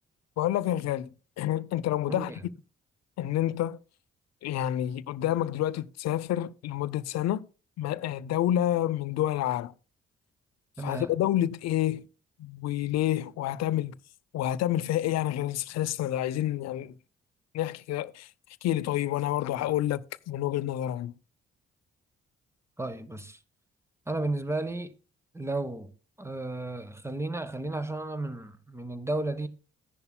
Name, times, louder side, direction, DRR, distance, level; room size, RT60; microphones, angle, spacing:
voice 1, 0.4-1.1 1.4-2.3 3.2-3.8 4.4-7.4 7.8-9.7 10.8-12.1 12.4-13.9 14.3-16.9 17.5-18.3 18.6-21.1, left 12 dB, 55° left, 0.6 m, -28 dB
voice 2, 2.1-2.4 10.8-11.1 22.8-23.4 24.1-24.9 25.3-25.9 26.2-29.5, right 2 dB, 10° right, 1.2 m, -33 dB
14.0 x 10.5 x 2.2 m
figure-of-eight pair, 40°, 32 cm